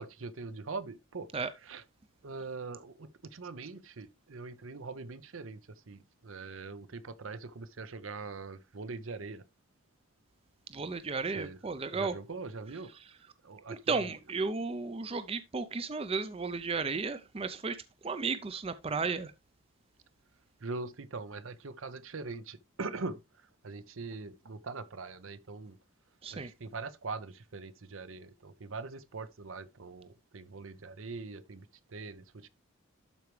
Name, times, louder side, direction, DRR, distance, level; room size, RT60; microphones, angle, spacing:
voice 1, 0.0-1.3 1.6-1.8 2.2-5.6 5.9-9.4 11.3-11.6 11.9-13.0 13.4-14.2 20.6-23.2 23.6-25.8 26.3-32.5, right 3 dB, 70° right, 0.8 m, -42 dB
voice 2, 10.7-12.1 13.7-17.8 18.0-19.3 26.2-26.5, right 4 dB, 30° right, 0.5 m, -34 dB
12.0 x 4.6 x 3.1 m
head